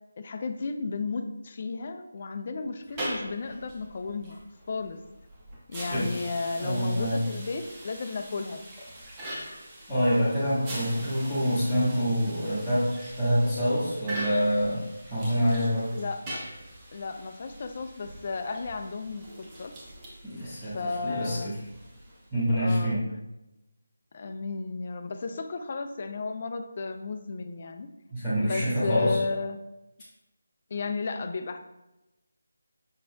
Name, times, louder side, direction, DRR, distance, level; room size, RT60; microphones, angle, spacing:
voice 1, 0.2-4.4 4.7-5.0 5.7-8.7 15.9-16.4 16.9-19.7 20.6-21.5 22.6-23.0 24.1-27.9 28.4-29.6 30.7-31.6, left 4 dB, 40° left, 7 dB, 0.4 m, -33 dB
sound 1, 2.8-22.4, right 1 dB, 20° right, 0.9 m, -42 dB
voice 2, 6.6-7.2 9.9-14.8 15.1-15.9 20.2-20.7 21.0-21.5 22.3-23.0 28.1-29.2, equal, ahead, -20 dB, 1.3 m, -26 dB
5.4 x 4.1 x 2.2 m, 0.95 s
figure-of-eight pair, 160°, 0 cm